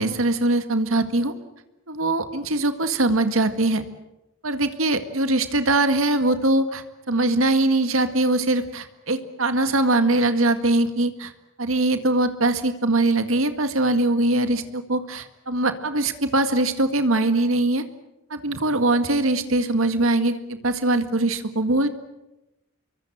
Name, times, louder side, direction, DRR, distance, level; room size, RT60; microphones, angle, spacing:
voice 1, 0.0-1.3 1.9-3.8 4.4-11.3 11.6-17.8 18.3-20.4 20.6-21.9, right 2 dB, 90° right, 9 dB, 1.9 m, -22 dB
26.5 x 23.5 x 8.0 m, 0.95 s
head